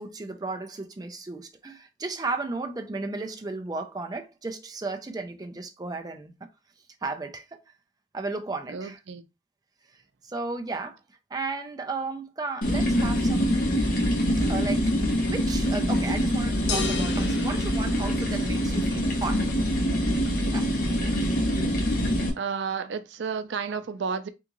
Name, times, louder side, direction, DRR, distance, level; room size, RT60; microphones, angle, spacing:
voice 1, 0.0-6.5 7.0-7.6 8.1-9.0 9.9-13.7 14.5-15.0 15.3-19.5 20.4-21.0, right 3 dB, 20° right, 0.4 m, -34 dB
voice 2, 8.7-9.2 22.4-24.3, right 6 dB, 85° right, 0.4 m, -31 dB
sound 1, 12.6-22.3, equal, 50° left, 1.0 m, -25 dB
sound 2, 16.7-18.7, left 5 dB, 70° left, 0.5 m, -34 dB
3.6 x 2.5 x 2.9 m
head